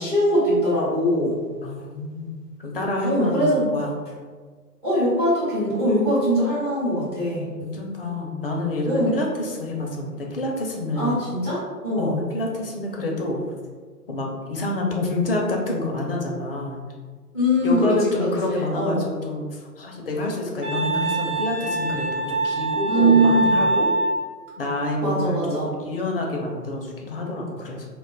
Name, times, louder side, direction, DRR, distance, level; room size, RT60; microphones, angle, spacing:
voice 1, 0.0-1.3 3.0-3.7 4.8-7.4 8.9-9.1 11.0-12.2 17.3-19.1 22.9-23.5 25.0-25.7, equal, 15° right, -9 dB, 0.5 m, -21 dB
voice 2, 1.6-2.3 2.6-3.9 7.4-11.2 11.9-13.4 14.1-16.8 17.6-23.9 24.6-27.9, left 2 dB, 40° left, 0 dB, 0.4 m, -28 dB
Wind instrument woodwind instrument, 20.6-24.3, right 2 dB, 45° right, 0.8 m, -24 dB
2.2 x 2.0 x 3.7 m, 1.5 s
figure-of-eight pair, 130°, 48 cm